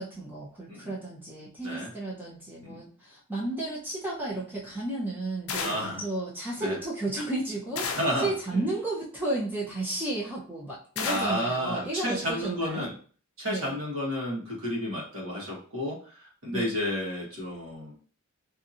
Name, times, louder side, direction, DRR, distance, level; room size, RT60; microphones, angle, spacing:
voice 1, 0.0-12.9 13.5-13.7 16.5-16.7, right 2 dB, 10° right, -6 dB, 0.6 m, -33 dB
sound 1, 5.5-6.0 7.8-8.3 11.0-11.5, left 6 dB, 70° left, 0.4 m, -33 dB
voice 2, 5.6-6.0 6.6-6.8 7.9-8.6 11.0-12.9 13.4-17.9, equal, 65° right, -4 dB, 1.2 m, -31 dB
2.7 x 2.7 x 2.5 m, 0.41 s
head